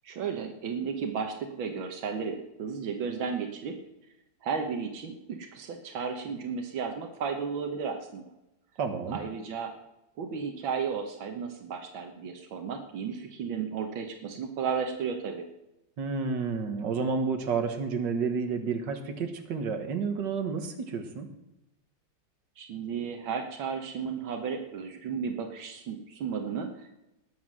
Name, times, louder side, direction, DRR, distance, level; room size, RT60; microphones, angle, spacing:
voice 1, 0.0-3.8 4.4-8.2 9.1-9.7 10.2-15.5 22.6-27.0, right 6 dB, 85° right, 4 dB, 1.9 m, -34 dB
voice 2, 8.8-9.2 16.0-21.3, right 5 dB, 65° right, 5 dB, 2.1 m, -30 dB
19.5 x 7.6 x 6.2 m, 0.94 s
omnidirectional pair, 2.1 m